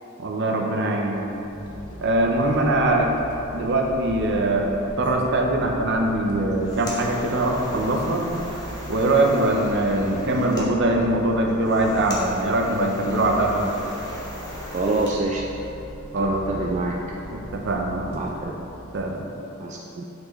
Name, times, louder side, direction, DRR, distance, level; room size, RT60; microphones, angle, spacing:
voice 1, 0.2-1.2 2.0-3.1 3.5-8.3 8.9-13.7 16.1-16.6 17.3-18.2 18.9-19.2, right 1 dB, 55° right, 1 dB, 0.7 m, -22 dB
sound 1, 1.1-19.3, equal, 80° left, 0.8 m, -40 dB
sound 2, 6.4-15.2, left 1 dB, 20° left, 1.1 m, -38 dB
voice 2, 14.7-15.4 16.1-16.9 18.1-18.5 19.6-20.0, right 2 dB, 35° right, -2 dB, 0.4 m, -26 dB
8.4 x 4.5 x 3.2 m, 3.0 s
head